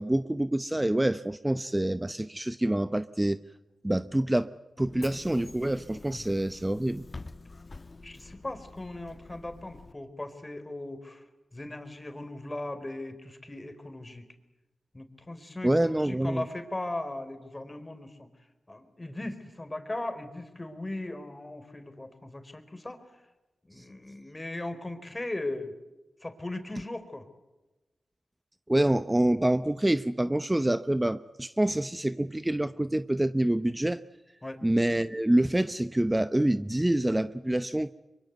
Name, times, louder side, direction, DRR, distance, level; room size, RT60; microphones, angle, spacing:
voice 1, 0.0-3.4 3.8-4.5 4.8-7.1 15.6-16.4 23.8-23.9 28.7-34.0 34.6-37.9, right 1 dB, 15° right, 13 dB, 0.8 m, -26 dB
Bus / Engine, 4.8-9.9, left 3 dB, 45° left, 1.2 m, -47 dB
voice 2, 8.0-11.2 11.5-14.3 14.9-18.3 18.7-23.0 23.6-25.7 26.2-27.3 34.4-34.6, left 2 dB, 25° left, 9 dB, 4.3 m, -38 dB
24.5 x 23.5 x 8.1 m, 1.1 s
cardioid pair, 45°, 0 cm